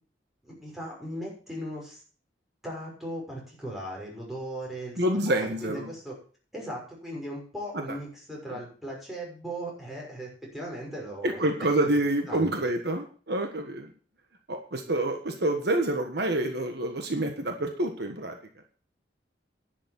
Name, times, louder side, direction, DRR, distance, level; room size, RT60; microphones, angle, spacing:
voice 1, 0.4-2.0 2.6-6.2 6.5-11.5 11.8-12.0 12.3-12.5, right 1 dB, ahead, -3 dB, 6.1 m, -38 dB
voice 2, 5.0-5.9 7.7-7.8 8.5-8.6 11.2-13.9 14.5-18.3, right 1 dB, 60° right, 4 dB, 1.5 m, -27 dB
10.5 x 7.3 x 7.1 m, 0.41 s
head